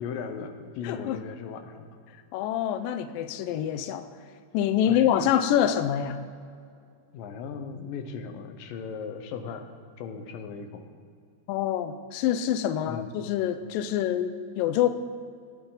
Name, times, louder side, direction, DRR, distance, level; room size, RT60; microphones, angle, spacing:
voice 1, 0.0-1.9 4.9-5.4 7.1-10.8 12.9-13.1, left 6 dB, 70° left, 6 dB, 2.4 m, -37 dB
voice 2, 0.8-1.2 2.3-4.1 4.5-6.2 11.5-14.9, left 10 dB, 90° left, 9 dB, 2.0 m, -26 dB
19.0 x 13.0 x 4.0 m, 2.3 s
omnidirectional pair, 4.6 m